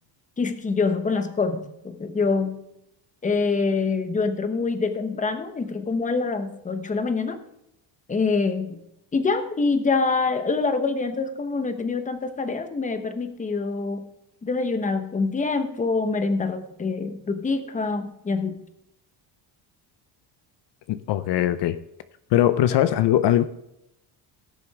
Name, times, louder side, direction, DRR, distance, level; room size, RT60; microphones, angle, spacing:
voice 1, 0.4-2.6 3.2-7.4 8.1-8.8 9.1-14.0 14.4-18.6, left 4 dB, 15° left, 9 dB, 1.0 m, -25 dB
voice 2, 20.9-21.8 22.3-23.4, left 12 dB, 65° left, 12 dB, 0.7 m, -20 dB
17.0 x 6.9 x 3.4 m, 0.81 s
cardioid pair, 140°, 46 cm